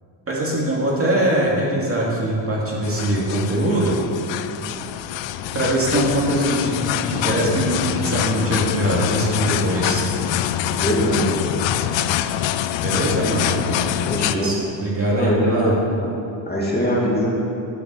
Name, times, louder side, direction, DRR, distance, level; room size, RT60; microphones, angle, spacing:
voice 1, 0.3-4.0 5.5-6.8 7.1-10.0 12.8-13.5 14.3-15.7, right 1 dB, 30° right, -4 dB, 2.6 m, -22 dB
sound 1, 2.8-14.4, left 12 dB, 70° left, 0.6 m, -25 dB
voice 2, 10.7-11.4 13.3-13.8 14.0-14.5 15.1-15.7 16.5-17.3, equal, 20° left, -5 dB, 2.5 m, -22 dB
8.6 x 5.7 x 7.8 m, 2.8 s
cardioid pair, 80°, 47 cm